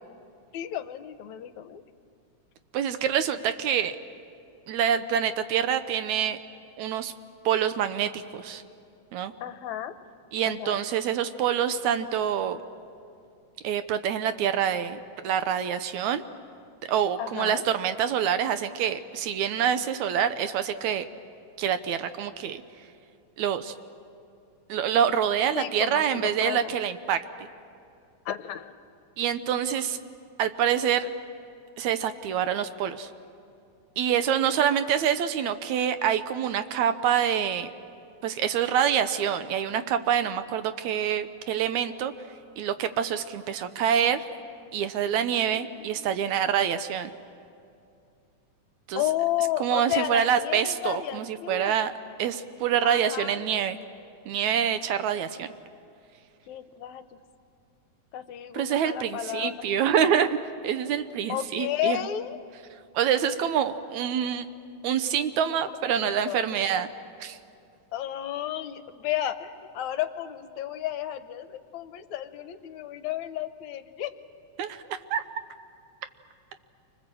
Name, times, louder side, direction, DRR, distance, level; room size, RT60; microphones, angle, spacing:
voice 1, 0.5-1.8 9.4-9.9 10.4-10.8 17.2-17.6 25.5-26.7 28.3-28.7 45.5-46.1 49.0-51.8 52.8-53.4 56.5-57.0 58.1-59.6 59.9-60.0 61.3-62.4 65.9-66.4 67.9-74.1, left 12 dB, 75° left, 10 dB, 2.0 m, -32 dB
voice 2, 2.7-4.0 4.7-6.4 6.8-7.1 7.5-8.6 9.1-9.3 10.3-12.6 13.6-15.0 15.2-16.2 16.9-21.1 21.6-22.6 23.4-23.7 24.7-27.5 29.2-30.0 30.4-31.1 31.8-33.1 34.0-37.7 38.2-42.1 42.6-44.3 44.7-47.1 48.9-49.0 49.6-51.9 52.2-53.8 54.3-55.5 58.5-60.4 60.6-62.0 62.9-64.5 64.8-66.9 67.2-67.4 74.6-75.2, right 9 dB, 75° right, 11 dB, 2.1 m, -26 dB
29.0 x 25.0 x 7.7 m, 2.5 s
omnidirectional pair, 3.5 m